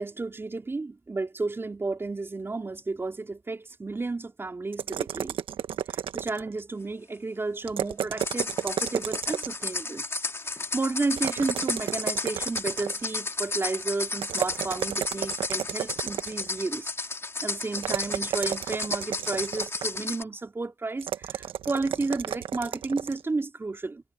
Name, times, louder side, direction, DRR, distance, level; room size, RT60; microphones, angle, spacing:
voice 1, 0.0-5.3 5.9-10.0 10.4-16.9 17.4-24.0, right 3 dB, 25° right, 3.6 m, -32 dB
sound 1, 4.7-6.6 7.6-9.7 11.2-13.1 14.2-16.6 17.8-20.0 21.0-23.2, right 10 dB, 85° right, 1.2 m, -32 dB
sound 2, 8.2-20.2, left 3 dB, 30° left, 2.7 m, -33 dB
cardioid pair, 90°, 9 cm